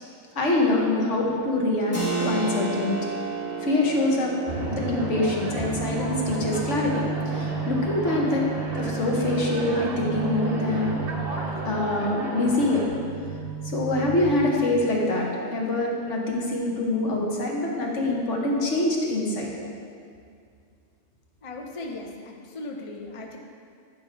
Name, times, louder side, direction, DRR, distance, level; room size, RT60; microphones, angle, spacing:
voice 1, 0.3-3.1 3.6-4.3 4.7-8.4 8.7-11.0 11.6-12.9 13.6-19.5, left 2 dB, 65° left, -2 dB, 1.5 m, -25 dB
Keyboard (musical), 1.9-12.3, right 3 dB, 10° left, 1.0 m, -35 dB
sound 1, 4.5-12.9, right 2 dB, 50° right, 1.2 m, -34 dB
sound 2, 4.5-14.5, right 5 dB, 80° right, 1.2 m, -33 dB
voice 2, 21.4-23.4, left 2 dB, 35° left, 1 dB, 0.6 m, -37 dB
10.0 x 5.5 x 4.5 m, 2.3 s
omnidirectional pair, 1.4 m